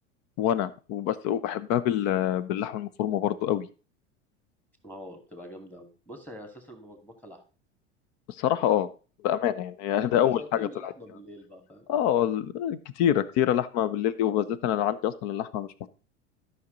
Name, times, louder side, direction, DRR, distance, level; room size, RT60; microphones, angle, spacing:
voice 1, 0.4-3.7 8.4-8.9 9.2-10.7 11.9-15.9, left 11 dB, 50° left, 17 dB, 0.8 m, -26 dB
voice 2, 4.8-7.4 10.2-11.9, left 1 dB, 5° left, 5 dB, 2.3 m, -45 dB
12.5 x 5.9 x 3.9 m, 0.35 s
hypercardioid pair, 85°, 36 cm